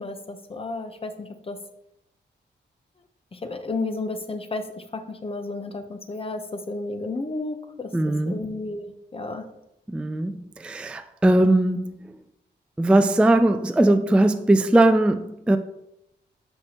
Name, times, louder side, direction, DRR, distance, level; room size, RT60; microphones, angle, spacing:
voice 1, 0.0-1.6 3.3-9.4, left 2 dB, 30° left, 0.8 m, -32 dB
voice 2, 7.9-8.4 9.9-12.2 12.8-15.6, right 1 dB, 5° right, 0.3 m, -20 dB
6.6 x 6.1 x 2.9 m
cardioid pair, 70°, 20 cm